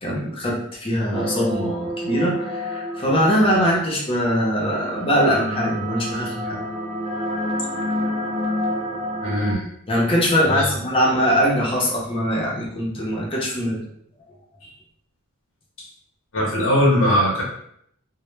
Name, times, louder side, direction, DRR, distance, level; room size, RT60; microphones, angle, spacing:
voice 1, 0.0-6.7 9.9-13.8, equal, 25° left, -2 dB, 0.6 m, -22 dB
sound 1, 1.1-3.6 4.6-9.5, equal, 30° right, 0.4 m, -28 dB
voice 2, 9.2-9.6 10.4-10.7 14.6-14.7 16.3-17.4, equal, 60° left, -5 dB, 0.7 m, -20 dB
2.1 x 2.0 x 3.0 m, 0.69 s
head